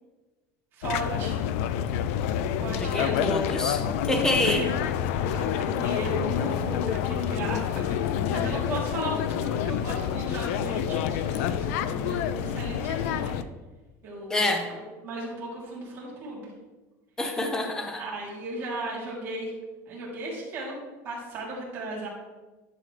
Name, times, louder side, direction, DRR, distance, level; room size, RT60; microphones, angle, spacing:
voice 1, 0.7-1.4 2.6-3.3 4.0-4.7 5.2-13.4 14.0-14.4 15.0-16.5 17.9-19.5 19.9-20.8 21.0-22.1, right 2 dB, 30° right, -5 dB, 3.1 m, -36 dB
sound 1, 0.8-13.4, left 9 dB, 70° left, 0.5 m, -28 dB
voice 2, 2.8-3.8 4.1-4.6 14.3-14.7 17.2-18.0, left 2 dB, 10° left, 4 dB, 0.7 m, -26 dB
11.5 x 6.9 x 3.3 m, 1.2 s
cardioid pair, 170°, 8 cm